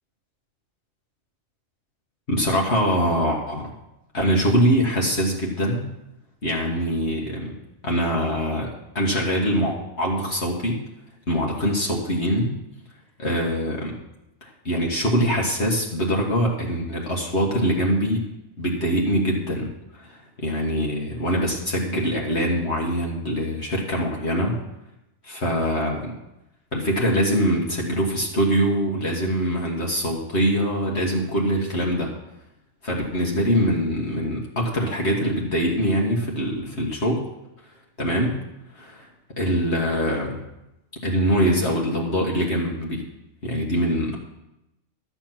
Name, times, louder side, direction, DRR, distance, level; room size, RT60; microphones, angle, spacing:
voice 1, 2.3-3.7 4.1-5.8 6.4-7.6 7.8-8.7 9.0-10.8 11.3-12.5 13.2-13.9 14.4-18.2 18.6-24.6 25.2-26.1 26.7-32.1 32.8-37.3 38.0-38.4 38.7-39.1 39.4-40.4 41.0-43.0 43.4-44.2, equal, 55° left, -2 dB, 1.9 m, -23 dB
12.5 x 7.2 x 5.9 m, 0.91 s
omnidirectional pair, 1.4 m